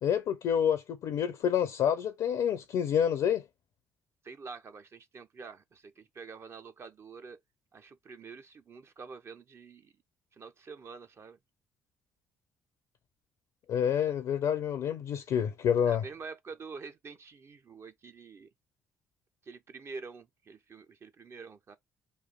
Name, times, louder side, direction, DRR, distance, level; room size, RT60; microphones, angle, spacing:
voice 1, 0.0-3.4 13.7-16.1, left 8 dB, 55° left, 0.4 m, -28 dB
voice 2, 4.2-7.4 7.7-9.9 10.3-11.4 15.9-18.5 19.5-21.8, right 4 dB, 35° right, 0.4 m, -47 dB
3.1 x 2.3 x 4.1 m
figure-of-eight pair, 45°, 7 cm